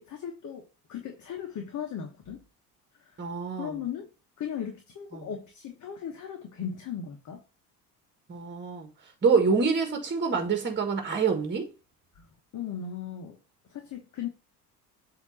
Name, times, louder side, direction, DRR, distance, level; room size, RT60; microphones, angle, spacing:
voice 1, 0.0-2.4 3.0-3.3 3.6-4.1 4.4-7.4 12.1-12.3 12.5-13.4 13.7-14.3, left 8 dB, 40° left, 1.3 m, -37 dB
voice 2, 3.2-3.8 5.1-5.3 8.3-8.9 9.2-11.7, right 5 dB, 25° right, 1.6 m, -26 dB
8.0 x 3.0 x 5.4 m
hypercardioid pair, 65°, 46 cm